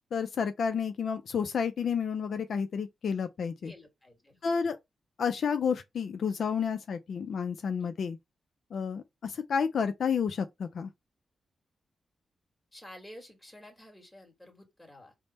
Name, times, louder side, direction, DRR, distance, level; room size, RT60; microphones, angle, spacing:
voice 1, 0.1-3.7 4.4-4.8 5.2-8.2 8.7-10.9, left 6 dB, 70° left, 0.4 m, -30 dB
voice 2, 3.6-4.6 7.8-7.9 12.7-15.1, left 1 dB, 10° left, 1.6 m, -51 dB
3.4 x 2.0 x 4.0 m
cardioid pair, 95°, 0 cm